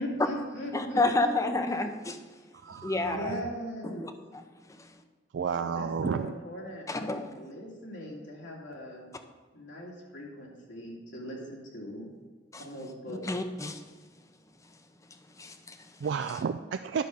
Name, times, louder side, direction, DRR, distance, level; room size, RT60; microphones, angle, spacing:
voice 1, 0.0-1.4 2.7-4.1 5.6-9.1 9.5-12.1 12.6-13.2, equal, 90° left, -3 dB, 2.6 m, -40 dB
voice 2, 0.7-2.2 2.8-3.3 3.8-4.4 4.7-4.9 6.9-7.5 12.5-12.6 13.2-13.8 15.4-15.9, left 2 dB, 15° left, 7 dB, 0.6 m, -30 dB
voice 3, 2.6-3.3 5.3-6.4 16.0-17.0, right 6 dB, 70° right, 8 dB, 0.3 m, -31 dB
10.5 x 6.3 x 5.3 m, 1.4 s
head